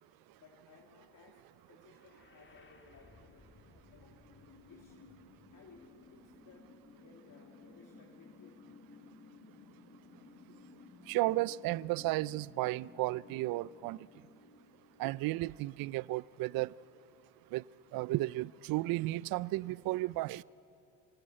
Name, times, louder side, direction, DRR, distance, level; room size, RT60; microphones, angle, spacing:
voice 1, 0.4-1.4 1.7-3.5 3.9-4.3 4.6-5.1 5.5-8.6, left 4 dB, 45° left, 3.1 m, -60 dB
sound 1, 1.8-15.8, left 4 dB, 25° left, 2.0 m, -58 dB
voice 2, 11.1-14.0 15.0-16.7 17.5-17.6 17.9-20.4, right 18 dB, 50° right, 0.5 m, -33 dB
26.0 x 16.5 x 8.7 m
supercardioid pair, 85°, 45 cm